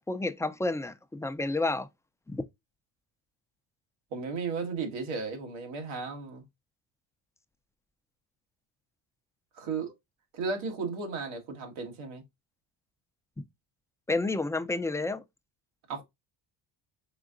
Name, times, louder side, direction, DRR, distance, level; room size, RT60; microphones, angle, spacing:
voice 1, 0.0-1.9 2.3-2.4 13.4-13.5 14.1-15.2, left 2 dB, 5° left, 0.4 m, -30 dB
voice 2, 4.1-6.4 9.6-9.9 10.3-12.2 15.9-16.0, right 4 dB, 85° right, 1.7 m, -34 dB
4.9 x 3.6 x 2.5 m
cardioid pair, 80°, 47 cm